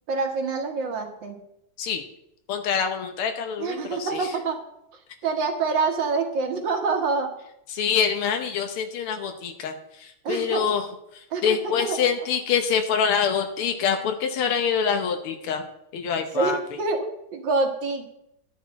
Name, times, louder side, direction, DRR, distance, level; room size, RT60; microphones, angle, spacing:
voice 1, 0.1-1.3 3.6-4.6 5.2-7.3 10.2-10.7 11.3-11.6 16.3-17.1 17.3-18.2, right 4 dB, 60° right, 3 dB, 2.0 m, -26 dB
voice 2, 2.5-4.4 7.7-10.9 11.1-15.7 15.9-16.6, left 7 dB, 85° left, 5 dB, 2.0 m, -25 dB
12.0 x 10.0 x 4.2 m, 0.80 s
omnidirectional pair, 2.3 m